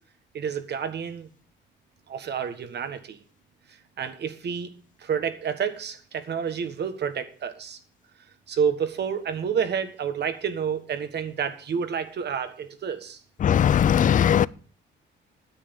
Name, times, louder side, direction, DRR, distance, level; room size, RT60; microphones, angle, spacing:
voice 1, 0.3-1.3 2.1-3.2 4.0-4.7 5.0-7.8 8.5-13.2, right 7 dB, 60° right, 1.5 m, -29 dB
voice 2, 13.4-14.5, left 9 dB, 40° left, 0.4 m, -19 dB
9.7 x 7.7 x 7.1 m
cardioid pair, 90°, 20 cm